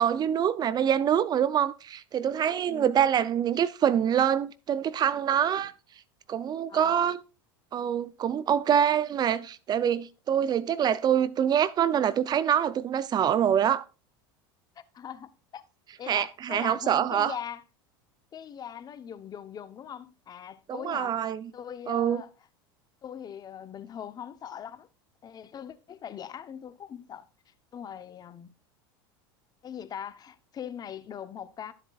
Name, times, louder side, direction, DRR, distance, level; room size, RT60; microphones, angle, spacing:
voice 1, 0.0-5.7 6.3-7.2 7.7-13.8 16.1-17.3 20.7-21.5 21.9-22.2, right 9 dB, 35° right, 0.5 m, -25 dB
voice 2, 6.7-7.1 14.8-15.6 16.0-17.6 18.3-21.2 21.5-22.3 23.0-24.9 25.2-27.3 27.7-28.5 29.6-31.7, left 9 dB, 35° left, 0.9 m, -41 dB
12.5 x 7.8 x 2.4 m
hypercardioid pair, 100°, 12 cm